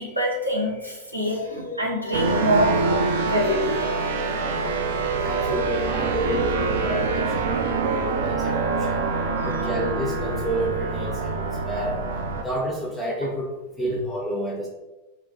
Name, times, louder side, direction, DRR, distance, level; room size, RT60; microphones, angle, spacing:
voice 1, 0.0-2.8 3.2-4.8 8.7-8.8 9.3-9.7, equal, 85° right, -3 dB, 0.7 m, -26 dB
sound 1, 2.1-12.4, right 4 dB, 60° right, 0.3 m, -25 dB
voice 2, 5.2-9.0 9.4-12.0 12.3-13.5 13.8-14.7, right 1 dB, 5° left, -4 dB, 0.5 m, -29 dB
2.3 x 2.3 x 3.6 m, 1.1 s
figure-of-eight pair, 90°, 0 cm